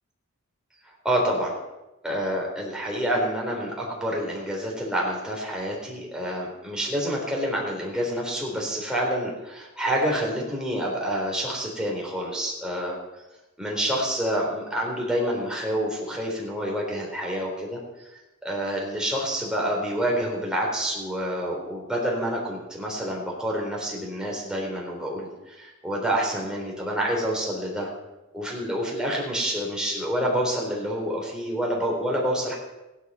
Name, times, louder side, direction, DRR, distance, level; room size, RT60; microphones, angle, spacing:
voice 1, 1.0-1.5 2.0-13.0 13.6-18.1 18.4-27.9 28.3-32.5, equal, 5° right, -3 dB, 3.9 m, -28 dB
16.0 x 11.5 x 5.6 m, 1.0 s
head